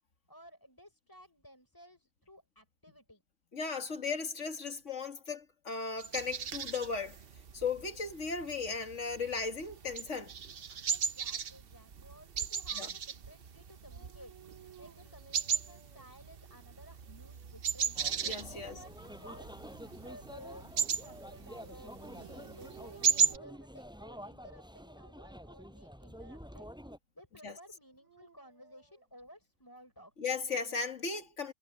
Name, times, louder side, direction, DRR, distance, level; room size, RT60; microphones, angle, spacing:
voice 1, 0.3-3.2 10.9-14.3 14.8-18.0 18.5-19.5 19.9-26.7 27.1-30.1, equal, 15° left, 6.0 m, -56 dB
voice 2, 3.5-7.2 7.5-10.3 12.8-12.9 18.2-18.8 27.4-27.6 30.2-31.5, left 4 dB, 60° left, 2.3 m, -36 dB
sound 1, 6.0-23.4, right 7 dB, 50° right, 0.9 m, -36 dB
Dog, 13.9-16.1 16.7-17.5 21.6-23.9 24.7-25.2 27.7-29.0, right 7 dB, 75° right, 6.5 m, -58 dB
sound 2, 17.9-27.0, equal, 5° right, 6.2 m, -49 dB
omnidirectional pair, 1.4 m